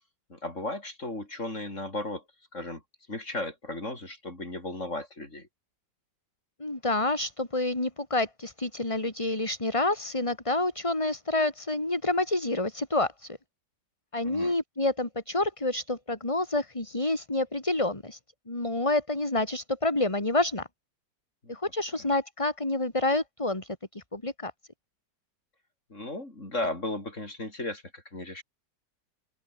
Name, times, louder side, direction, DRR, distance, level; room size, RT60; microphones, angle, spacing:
voice 1, 0.3-2.2 2.5-2.8 3.1-5.5 14.2-14.6 21.4-21.6 25.9-28.4, left 2 dB, 40° left, 7.2 m, -35 dB
voice 2, 6.6-13.4 14.1-18.2 18.5-20.7 21.5-24.5, left 2 dB, 15° left, 3.2 m, -28 dB
open air
omnidirectional pair, 2.0 m